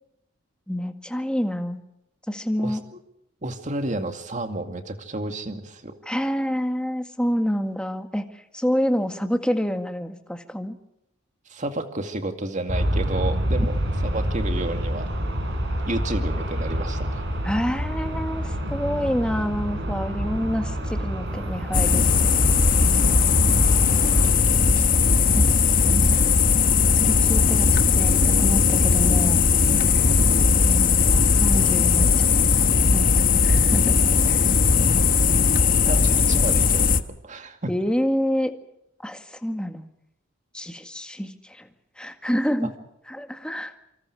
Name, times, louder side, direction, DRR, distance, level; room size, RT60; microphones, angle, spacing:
voice 1, 0.7-1.8 2.3-2.8 6.1-8.3 8.5-10.8 17.4-22.3 25.9-26.2 26.9-29.4 29.8-30.2 30.6-31.1 31.4-32.3 32.9-34.0 34.3-34.5 37.7-38.5 39.0-39.9 40.5-41.7 42.0-42.7 43.1-43.7, equal, 5° left, 6 dB, 1.8 m, -27 dB
voice 2, 2.6-3.0 3.4-6.0 11.5-15.1 15.9-17.2 23.9-25.3 26.1-26.3 35.9-36.9 37.2-37.7 42.6-42.7, right 2 dB, 40° right, 6 dB, 2.3 m, -32 dB
Aircraft, 12.7-24.3, equal, 65° right, 6.8 m, -27 dB
sound 1, 21.7-37.0, left 5 dB, 45° left, 1.2 m, -18 dB
27.5 x 26.0 x 4.9 m, 0.82 s
head